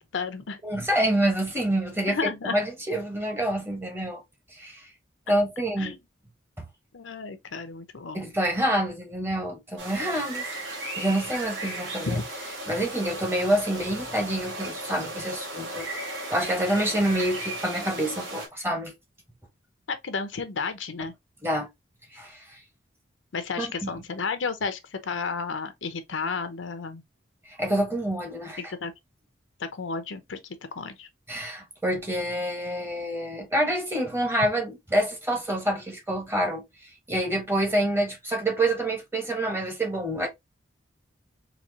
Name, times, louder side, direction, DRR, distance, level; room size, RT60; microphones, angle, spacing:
voice 1, 0.1-0.6 2.1-2.6 5.8-6.0 6.9-8.2 12.1-12.2 19.9-21.1 23.3-27.0 28.6-28.9 29.6-30.4 30.7-31.1, left 5 dB, 85° left, 0.7 m, -32 dB
voice 2, 0.6-4.2 4.5-4.8 5.3-6.0 6.6-6.7 8.1-10.5 11.0-12.2 12.7-15.9 16.3-18.9 21.4-21.7 22.1-22.4 23.6-23.9 27.6-28.7 31.3-36.6 37.1-40.3, right 1 dB, 15° right, 1.1 m, -27 dB
sound 1, 9.8-18.5, right 1 dB, 85° right, 1.8 m, -36 dB
4.2 x 2.8 x 2.7 m
head